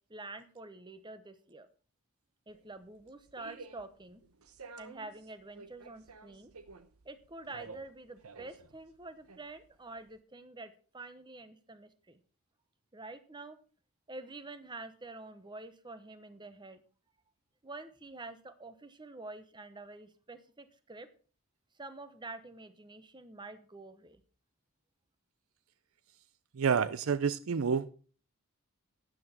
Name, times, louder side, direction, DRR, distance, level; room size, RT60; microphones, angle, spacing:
voice 1, 0.1-1.7 2.5-4.2 4.8-6.5 7.0-12.2 12.9-13.6 14.1-16.8 17.6-21.1 21.8-24.2, right 2 dB, 20° right, 11 dB, 0.9 m, -47 dB
sound 1, 2.5-10.2, right 4 dB, 90° right, 1.0 m, -52 dB
voice 2, 26.5-27.9, right 6 dB, 70° right, 16 dB, 0.5 m, -29 dB
12.5 x 9.0 x 4.3 m, 0.39 s
head